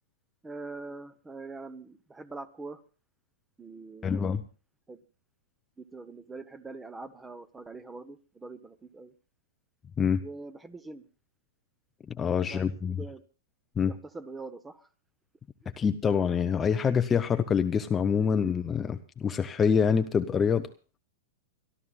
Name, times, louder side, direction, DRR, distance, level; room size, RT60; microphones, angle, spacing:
voice 1, 0.4-2.8 3.6-4.4 4.9-5.0 5.8-9.1 10.2-11.0 12.5-13.2 13.9-14.9 15.6-15.7 18.2-18.5, right 3 dB, 10° right, 13 dB, 1.1 m, -43 dB
voice 2, 4.0-4.4 10.0-10.2 12.1-13.0 13.8-13.9 15.8-20.7, left 6 dB, 20° left, 8 dB, 0.7 m, -26 dB
29.5 x 12.5 x 2.4 m, 0.34 s
hypercardioid pair, 135°, 0 cm